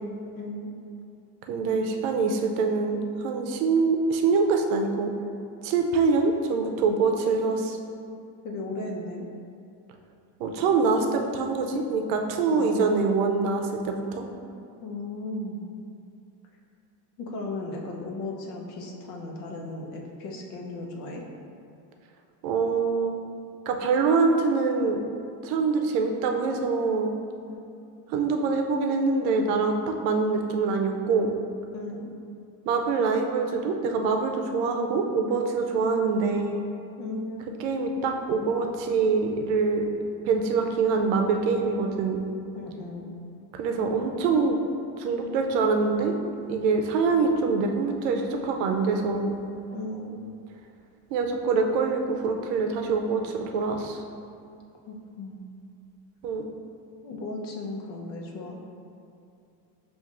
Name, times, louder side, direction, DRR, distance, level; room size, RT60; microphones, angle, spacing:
voice 1, 0.3-0.7 8.4-9.3 12.5-13.3 14.8-15.6 17.2-21.2 27.4-27.6 31.7-32.1 37.0-37.5 42.5-43.2 49.7-50.2 54.9-55.5 57.0-58.6, left 2 dB, 75° left, 0 dB, 0.9 m, -36 dB
voice 2, 1.5-5.1 5.6-7.8 10.4-14.2 22.4-23.1 23.7-25.0 25.4-27.1 28.1-31.3 32.7-36.6 37.6-39.9 40.3-42.2 43.5-44.6 45.0-46.2 46.5-49.4 51.1-54.0 56.2-56.4, right 4 dB, 90° right, 3 dB, 0.6 m, -24 dB
7.1 x 2.5 x 2.5 m, 2.6 s
cardioid pair, 130°, 49 cm